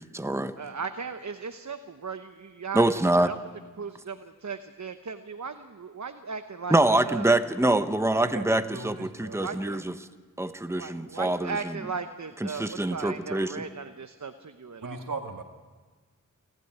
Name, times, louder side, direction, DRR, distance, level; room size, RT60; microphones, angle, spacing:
voice 1, 0.0-0.6 2.7-3.3 6.7-9.9 10.4-11.7 12.4-13.7, right 1 dB, 10° right, 10 dB, 1.0 m, -25 dB
voice 2, 0.6-3.4 3.8-6.8 7.0-7.3 9.3-9.8 10.7-15.0, right 5 dB, 60° right, 8 dB, 1.0 m, -37 dB
voice 3, 8.1-9.4 14.8-15.4, right 3 dB, 85° right, 4 dB, 1.9 m, -38 dB
28.0 x 12.0 x 9.3 m, 1.4 s
wide cardioid pair, 45°, 32 cm